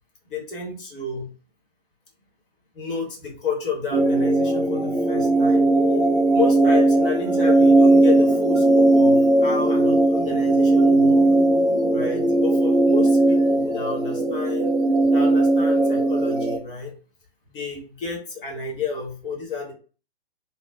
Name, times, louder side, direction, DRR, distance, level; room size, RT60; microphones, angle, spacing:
voice 1, 0.3-1.3 2.7-5.7 6.3-11.2 11.9-14.7 15.1-16.9 17.5-19.7, left 5 dB, 55° left, 0 dB, 1.3 m, -31 dB
sound 1, 3.9-16.6, right 2 dB, 10° right, 0.5 m, -18 dB
2.9 x 2.1 x 2.4 m, 0.37 s
figure-of-eight pair, 115°, 32 cm